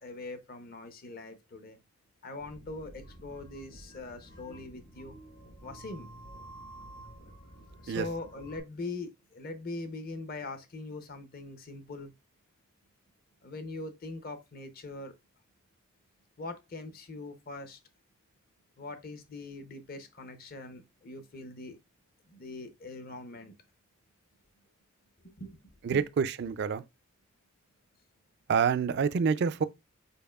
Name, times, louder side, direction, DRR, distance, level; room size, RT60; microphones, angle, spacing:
voice 1, 0.0-1.8 2.2-5.2 5.6-6.1 7.8-12.1 13.4-15.2 16.4-17.8 18.8-21.8 22.3-23.5 25.2-25.6 25.9-26.0, left 2 dB, 40° left, 0.6 m, -42 dB
sound 1, 2.4-8.6, right 1 dB, 75° left, 2.3 m, -50 dB
voice 2, 25.8-26.8 28.5-29.6, right 6 dB, 50° right, 0.3 m, -27 dB
5.3 x 4.3 x 2.3 m
head